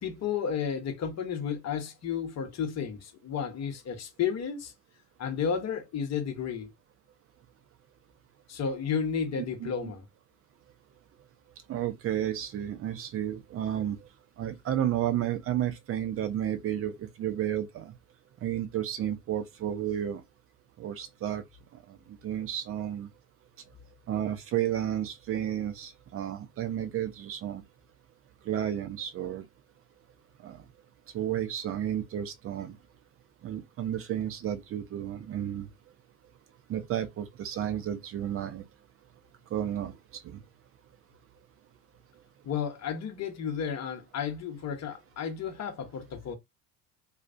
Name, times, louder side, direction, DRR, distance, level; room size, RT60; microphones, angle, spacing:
voice 1, 0.0-4.7 5.2-6.7 8.5-10.0 42.4-46.3, left 7 dB, 35° left, 0.9 m, -32 dB
voice 2, 9.6-9.9 11.7-14.0 14.4-17.9 18.4-20.2 20.8-21.4 21.9-23.1 24.1-27.6 28.4-29.5 30.4-30.6 31.1-32.8 33.4-35.7 36.7-38.6 39.5-39.9 40.2-40.4, right 10 dB, 30° right, 0.6 m, -32 dB
2.4 x 2.0 x 2.5 m
hypercardioid pair, 70°, 48 cm